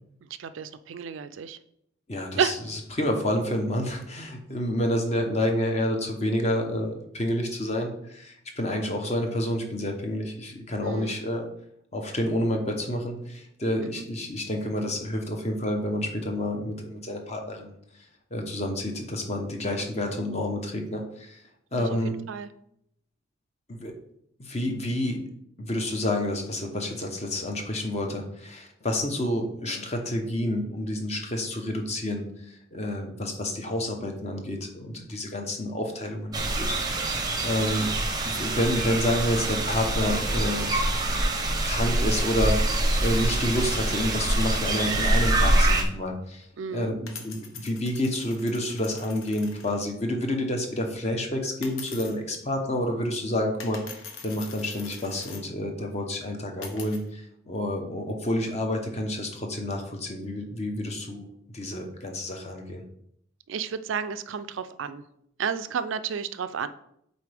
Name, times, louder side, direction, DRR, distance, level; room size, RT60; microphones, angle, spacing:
voice 1, 0.4-1.6 2.4-2.6 10.8-11.2 13.8-14.0 21.7-22.5 46.6-46.9 63.5-65.0 65.4-66.7, right 7 dB, 65° right, 12 dB, 0.4 m, -31 dB
voice 2, 2.1-2.5 2.9-11.5 11.9-17.7 18.3-21.4 21.7-22.2 23.7-23.9 24.4-25.2 25.6-32.2 32.7-37.1 37.4-37.9 38.3-40.7 41.6-46.4 46.7-53.8 54.2-62.8, left 1 dB, 30° left, 3 dB, 0.9 m, -29 dB
sound 1, 36.3-45.8, right 1 dB, 20° right, 0.7 m, -25 dB
sound 2, 43.0-45.4 46.4-46.5 47.1-49.8 51.6-52.2 53.6-55.5 56.6-57.1, left 5 dB, 75° left, 0.9 m, -44 dB
8.2 x 4.0 x 3.4 m, 0.73 s
head